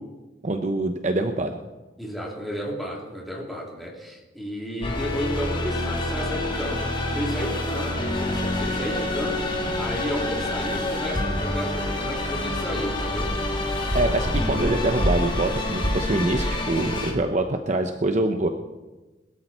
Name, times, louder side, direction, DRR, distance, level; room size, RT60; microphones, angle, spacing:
voice 1, 0.4-1.5 13.9-18.5, right 2 dB, 40° right, 6 dB, 0.9 m, -24 dB
voice 2, 2.0-13.4, equal, ahead, -2 dB, 3.1 m, -32 dB
sound 1, 4.8-17.1, left 2 dB, 25° left, 2.2 m, -28 dB
sound 2, 6.5-16.5, equal, 60° right, 2.2 m, -32 dB
21.0 x 12.5 x 4.4 m, 1.2 s
head